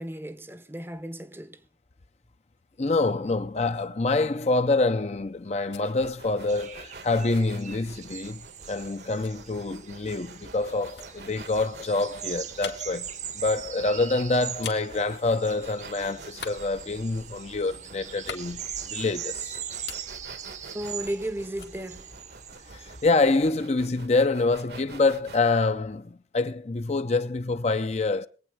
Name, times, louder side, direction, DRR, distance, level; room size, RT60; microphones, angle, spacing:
voice 1, 0.0-1.6 20.7-22.1, right 1 dB, 15° right, 0.7 m, -34 dB
voice 2, 2.8-8.4 8.7-13.1 13.3-19.6 22.7-28.3, left 3 dB, 40° left, 0.6 m, -26 dB
sound 1, 5.3-8.3 9.2-15.9 16.3-19.3 19.6-21.3 21.6-22.9, left 7 dB, 85° left, 1.9 m, -46 dB
sound 2, 5.8-25.5, right 3 dB, 65° right, 1.3 m, -48 dB
sound 3, 6.5-23.1, right 8 dB, 40° right, 0.8 m, -41 dB
22.5 x 8.8 x 4.7 m
head